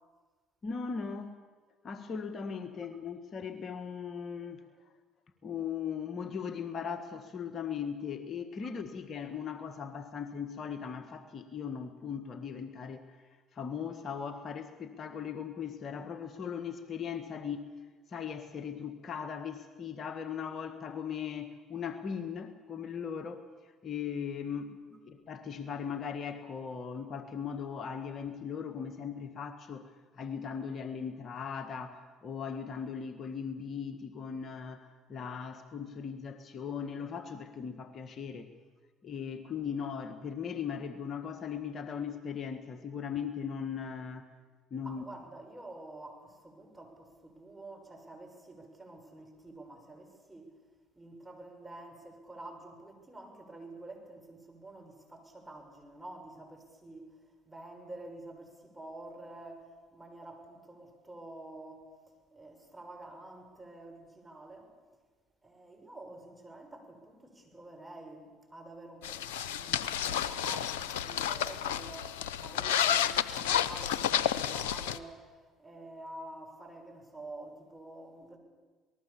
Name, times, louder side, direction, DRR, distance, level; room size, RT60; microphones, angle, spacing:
voice 1, 0.6-1.4 1.8-4.6 5.4-13.2 13.5-17.7 18.1-38.5 39.0-44.3 44.7-45.1, left 7 dB, 45° left, 9 dB, 1.5 m, -38 dB
voice 2, 44.8-50.5 51.0-57.1 57.4-61.9 62.3-64.7 65.4-78.4, right 2 dB, 10° right, 3 dB, 6.5 m, -48 dB
sound 1, 69.0-75.0, left 9 dB, 85° left, 0.7 m, -31 dB
26.5 x 19.5 x 7.2 m, 1.4 s
hypercardioid pair, 65°, 0 cm